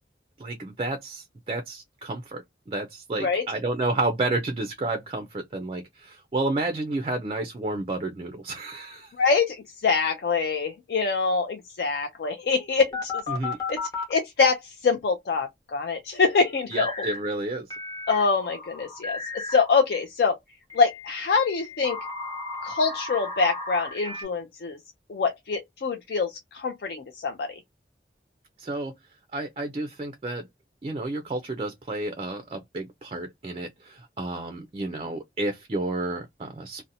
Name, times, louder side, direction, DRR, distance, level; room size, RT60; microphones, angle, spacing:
voice 1, 0.4-9.1 13.3-13.6 16.7-17.7 28.6-28.9 29.3-30.5 30.8-36.9, right 2 dB, 30° right, 0.3 m, -31 dB
voice 2, 9.2-13.2 13.7-13.8 14.1-17.1 18.1-20.4 20.7-22.0 22.6-24.8 25.1-27.5, left 4 dB, 60° left, 0.4 m, -25 dB
sound 1, 12.9-14.1 16.7-17.2 17.7-19.8 20.7-24.2, left 3 dB, 20° left, 0.9 m, -34 dB
2.6 x 2.0 x 2.6 m
head